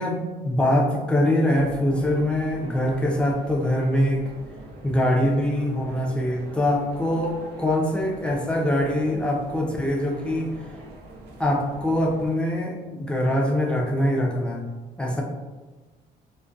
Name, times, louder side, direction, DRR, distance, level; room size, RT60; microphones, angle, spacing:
voice 1, 0.0-4.3 4.8-10.5 11.4-14.6 15.0-15.2, left 1 dB, 5° left, -1 dB, 0.4 m, -23 dB
sound 1, 1.5-12.4, right 2 dB, 80° right, 0.5 m, -43 dB
2.3 x 2.1 x 2.5 m, 1.3 s
cardioid pair, 110°, 17 cm